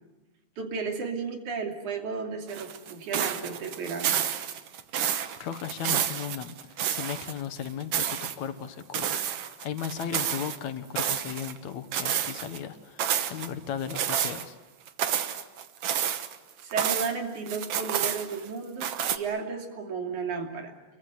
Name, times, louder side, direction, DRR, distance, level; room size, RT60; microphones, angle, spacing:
voice 1, 0.6-4.2 16.6-20.7, right 5 dB, 85° right, 3 dB, 4.1 m, -33 dB
sound 1, 2.5-7.4 7.7-8.3 8.9-10.6 11.0-11.6 11.9-12.6 13.0-13.5 13.9-14.4 14.9-17.1 17.5-18.5 18.8-19.2, right 9 dB, 60° right, 1.9 m, -30 dB
voice 2, 5.4-14.6, left 8 dB, 70° left, 10 dB, 2.6 m, -36 dB
28.5 x 23.0 x 8.2 m, 1.1 s
omnidirectional pair, 3.4 m